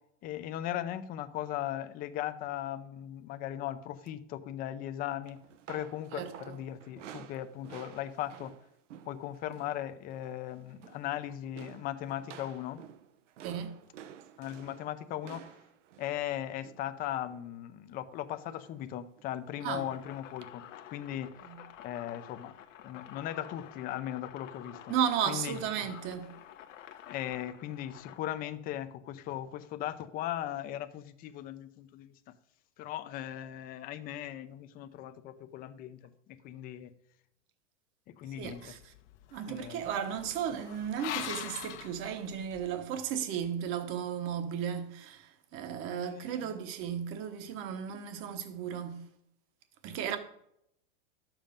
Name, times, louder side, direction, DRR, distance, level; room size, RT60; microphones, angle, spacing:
voice 1, 0.2-5.4 5.7-8.5 9.1-12.8 14.4-15.4 16.0-21.3 21.8-22.5 22.8-24.9 25.3-25.6 27.1-32.3 32.8-36.0 36.3-36.9 38.2-38.7 39.5-39.8 45.9-46.5, left 12 dB, 25° left, 0.6 m, -38 dB
sound 1, 5.3-9.8 10.1-10.4 10.7-11.2 11.6-17.6 18.4-18.8 19.2-19.3 20.4-20.5, right 9 dB, 75° right, 1.0 m, -51 dB
voice 2, 6.1-6.6 13.4-13.7 19.6-19.9 21.4-21.6 24.9-26.3 38.3-38.9 39.3-49.0 49.8-50.2, right 8 dB, 35° right, 1.1 m, -35 dB
sound 2, 19.6-28.2, left 11 dB, 90° left, 1.1 m, -50 dB
sound 3, 38.4-42.8, left 11 dB, 65° left, 1.1 m, -43 dB
11.5 x 7.4 x 5.2 m
supercardioid pair, 155°, 37 cm